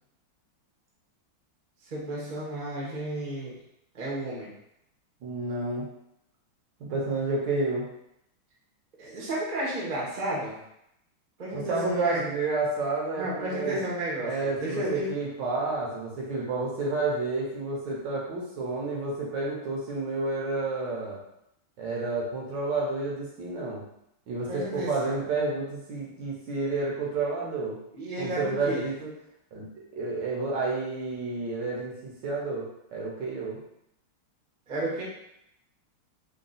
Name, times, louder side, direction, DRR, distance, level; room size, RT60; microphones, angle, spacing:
voice 1, 1.9-3.5 3.9-4.5 9.0-10.5 11.4-12.2 13.2-15.1 24.5-25.2 27.9-28.8 34.7-35.0, right 1 dB, 45° right, -5 dB, 0.6 m, -32 dB
voice 2, 5.2-5.8 6.8-7.8 11.5-13.8 14.2-21.2 21.8-23.8 24.3-27.8 28.2-29.1 29.5-33.6, right 3 dB, 65° right, -3 dB, 1.3 m, -30 dB
3.8 x 2.2 x 3.9 m, 0.79 s
omnidirectional pair, 2.4 m